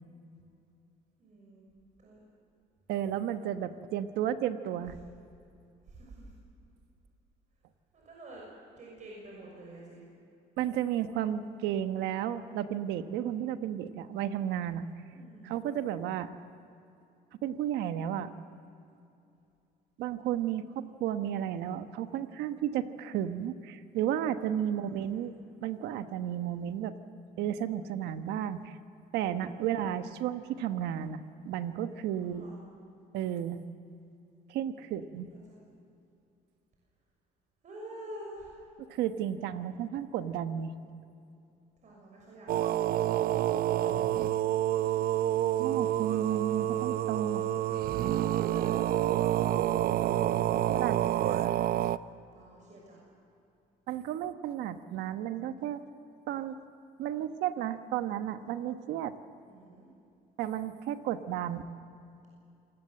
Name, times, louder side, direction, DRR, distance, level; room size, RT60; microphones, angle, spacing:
voice 1, 1.2-1.7 2.0-2.2 5.8-6.3 7.9-8.4 8.8-10.0 15.1-15.6 24.6-25.3 29.6-30.0 32.2-32.6 35.3-35.6 37.6-38.7 41.8-43.1 43.6-44.1 45.8-45.9 48.3-48.8 50.7-51.8 52.3-53.0 59.4-59.9 61.3-61.6, right 1 dB, 45° right, -3 dB, 6.4 m, -49 dB
voice 2, 2.9-4.9 10.6-14.9 15.4-16.3 17.4-18.3 20.0-25.3 25.6-26.9 27.4-28.8 29.1-32.4 33.1-33.6 34.5-35.3 38.9-40.7 45.6-47.4 50.7-51.0 53.9-55.8 56.3-56.6 57.0-59.2 60.4-61.6, right 10 dB, 85° right, 10 dB, 1.2 m, -33 dB
sound 1, 42.5-52.0, right 12 dB, 60° right, 0.6 m, -28 dB
27.5 x 19.0 x 7.7 m, 2.6 s
cardioid pair, 110°, 17 cm